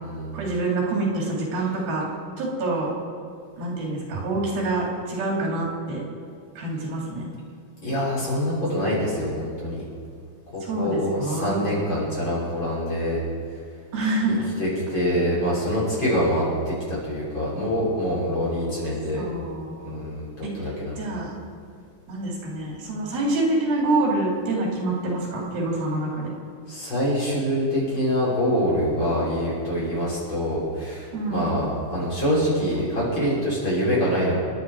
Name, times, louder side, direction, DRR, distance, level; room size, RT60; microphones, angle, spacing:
voice 1, 0.3-2.1 2.4-2.9 3.6-6.0 6.5-7.3 10.6-11.7 13.9-14.5 19.1-20.0 20.4-20.5 21.0-21.3 22.1-26.3 31.1-31.5 32.7-32.8, right 2 dB, 85° right, -3 dB, 5.0 m, -26 dB
voice 2, 7.8-9.8 10.5-13.2 14.6-19.2 19.8-21.0 26.7-34.3, equal, 30° left, -7 dB, 6.3 m, -25 dB
28.5 x 10.5 x 4.8 m, 2.2 s
omnidirectional pair, 4.1 m